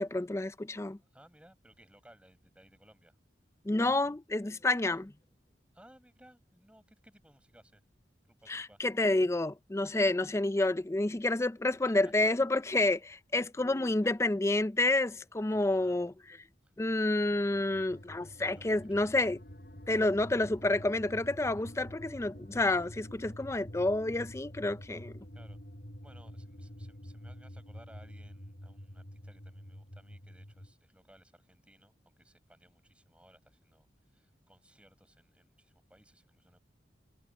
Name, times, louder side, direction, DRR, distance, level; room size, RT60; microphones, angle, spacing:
voice 1, 0.0-1.0 3.7-5.0 8.5-16.1 16.8-19.4 19.9-25.1, left 2 dB, 15° left, 0.4 m, -29 dB
voice 2, 1.0-3.2 4.8-5.1 5.7-7.8 8.3-8.8 11.8-12.3 12.8-13.0 15.5-16.0 16.6-16.7 18.5-19.1 25.3-25.6 26.0-36.6, right 1 dB, 5° right, 7.4 m, -60 dB
sound 1, 17.5-30.7, equal, 55° left, 5.2 m, -48 dB
head